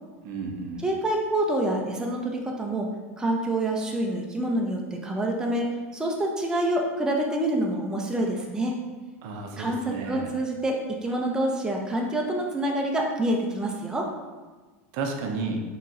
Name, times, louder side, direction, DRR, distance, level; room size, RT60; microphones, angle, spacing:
voice 1, 0.2-0.8 9.2-10.3 14.9-15.6, right 4 dB, 55° right, 3 dB, 0.6 m, -32 dB
voice 2, 0.8-2.9 3.2-8.7 9.6-14.1, right 1 dB, 10° right, 0 dB, 0.5 m, -27 dB
4.4 x 3.1 x 2.5 m, 1.3 s
hypercardioid pair, 110°, 8 cm